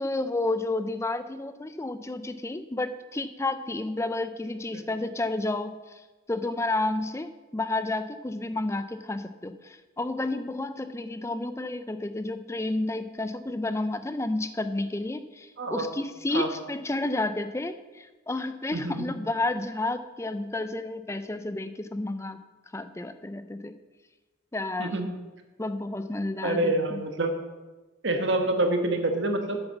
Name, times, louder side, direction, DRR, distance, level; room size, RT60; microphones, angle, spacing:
voice 1, 0.0-6.0 6.3-22.4 22.7-23.7 24.5-25.1 25.6-27.0, left 2 dB, 15° left, 11 dB, 0.4 m, -31 dB
voice 2, 15.6-15.9 16.3-16.5 18.7-19.1 24.8-25.1 26.4-27.3 28.0-29.6, right 2 dB, 60° right, 5 dB, 1.2 m, -27 dB
8.1 x 6.9 x 7.0 m, 1.2 s
head